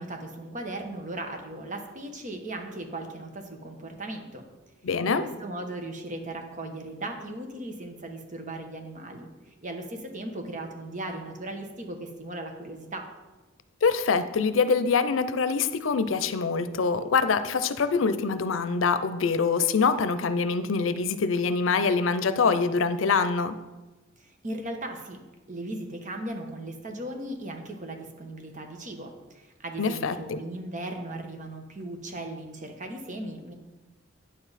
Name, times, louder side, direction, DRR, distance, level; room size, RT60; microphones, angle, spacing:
voice 1, 0.0-4.4 5.1-13.1 24.2-25.2 25.5-33.5, right 1 dB, 40° right, 4 dB, 1.2 m, -37 dB
voice 2, 4.8-5.2 13.8-23.5 29.8-30.4, left 5 dB, 90° left, 12 dB, 0.5 m, -24 dB
9.4 x 7.0 x 4.1 m, 1.1 s
head